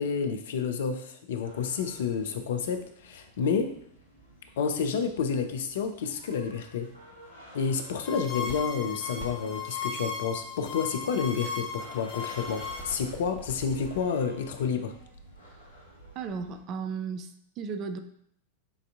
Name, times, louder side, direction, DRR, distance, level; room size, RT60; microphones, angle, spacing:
voice 1, 0.0-3.8 4.6-6.9 7.5-15.0, left 6 dB, 60° left, 7 dB, 0.4 m, -30 dB
sound 1, 1.4-16.6, right 1 dB, 90° right, 1.4 m, -51 dB
sound 2, 8.0-14.0, left 5 dB, 30° left, 1.3 m, -36 dB
voice 2, 16.2-18.0, right 5 dB, 35° right, 8 dB, 0.4 m, -35 dB
7.0 x 2.6 x 2.4 m, 0.69 s
figure-of-eight pair, 90°, 0 cm